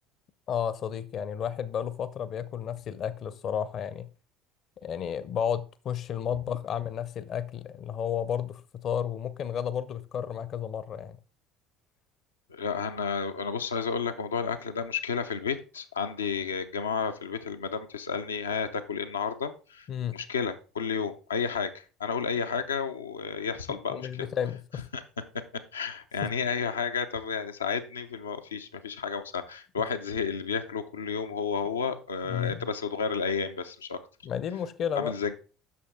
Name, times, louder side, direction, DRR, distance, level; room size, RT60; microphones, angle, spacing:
voice 1, 0.5-4.1 4.8-11.2 19.9-20.2 23.9-24.9 26.2-26.3 32.2-32.7 34.2-35.1, left 8 dB, 45° left, 0.7 m, -32 dB
voice 2, 12.5-19.9 20.1-21.7 22.0-24.3 24.9-25.0 25.7-34.0 35.0-35.4, left 6 dB, 80° left, 0.7 m, -31 dB
8.5 x 6.4 x 3.7 m
figure-of-eight pair, 65°, 0 cm